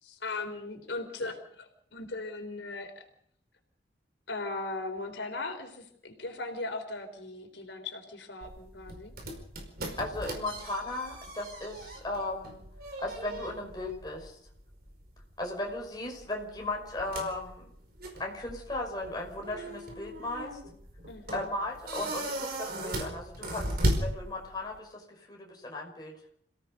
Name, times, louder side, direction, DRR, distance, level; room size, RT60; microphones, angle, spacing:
voice 1, 0.0-3.0 4.3-9.1 21.1-21.5, left 2 dB, 90° left, 5 dB, 4.0 m, -38 dB
sound 1, 8.4-24.8, right 1 dB, 55° right, 4.9 m, -37 dB
voice 2, 10.0-12.7 13.0-14.4 15.4-17.7 18.2-20.6 21.3-26.2, left 2 dB, 20° left, 0 dB, 5.5 m, -36 dB
28.5 x 17.5 x 5.4 m, 0.65 s
head